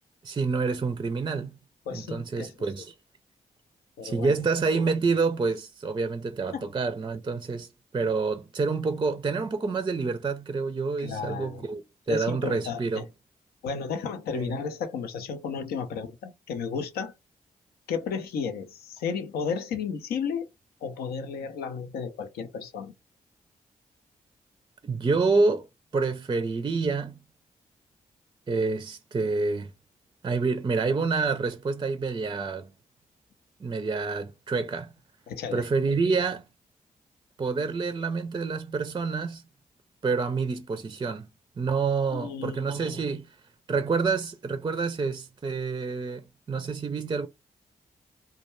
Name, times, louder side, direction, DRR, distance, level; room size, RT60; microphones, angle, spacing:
voice 1, 0.2-1.6 1.9-2.9 4.0-7.7 7.9-13.0 14.3-14.6 24.8-25.7 25.9-27.2 28.5-29.7 30.2-32.7 33.6-34.9 35.5-36.4 37.4-39.4 40.0-41.3 41.6-43.3 43.7-47.3, right 4 dB, 30° right, 0.4 m, -28 dB
voice 2, 1.9-2.5 4.0-4.4 6.5-6.7 11.0-11.6 12.1-13.1 13.6-17.1 17.9-20.5 20.8-22.9 35.3-35.7 42.1-43.0, left 6 dB, 85° left, 0.5 m, -33 dB
2.2 x 2.1 x 3.0 m
supercardioid pair, 45°, 16 cm